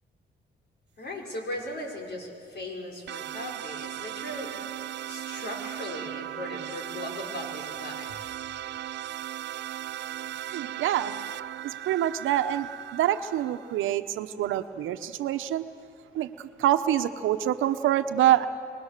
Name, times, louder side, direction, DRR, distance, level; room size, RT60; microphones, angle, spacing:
voice 1, 1.0-4.8 5.1-8.2, left 1 dB, 60° left, 1 dB, 5.4 m, -38 dB
sound 1, 3.1-13.9, right 12 dB, 60° right, 0.5 m, -37 dB
voice 2, 10.5-11.1 11.6-15.6 16.1-18.5, right 12 dB, 85° right, 10 dB, 1.0 m, -26 dB
26.0 x 21.0 x 6.7 m, 2.6 s
cardioid pair, 90°, 20 cm